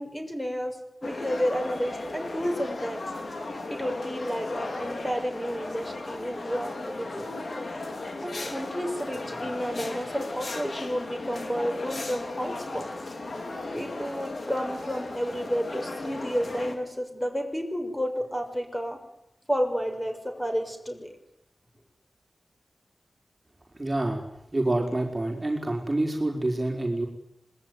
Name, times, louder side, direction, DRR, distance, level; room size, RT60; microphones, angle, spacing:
voice 1, 0.0-3.0 3.7-7.3 8.2-12.9 13.7-19.0 19.5-21.1, equal, 5° left, 5 dB, 6.5 m, -31 dB
sound 1, 1.0-16.8, left 2 dB, 55° left, 4.8 m, -36 dB
voice 2, 23.8-24.2 24.5-27.1, right 2 dB, 25° right, 1 dB, 4.8 m, -27 dB
26.0 x 21.5 x 9.7 m, 0.77 s
wide cardioid pair, 90°, 0 cm